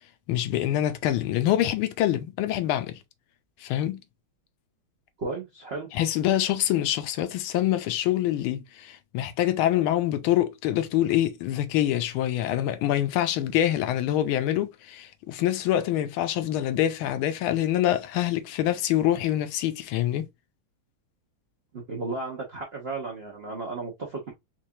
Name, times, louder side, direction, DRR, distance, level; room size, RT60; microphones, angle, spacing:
voice 1, 0.3-2.9 3.6-4.0 5.9-20.3, left 12 dB, 80° left, 1.4 m, -25 dB
voice 2, 5.2-5.9 21.7-24.3, right 3 dB, 70° right, 0.6 m, -34 dB
4.5 x 2.4 x 2.7 m
omnidirectional pair, 2.4 m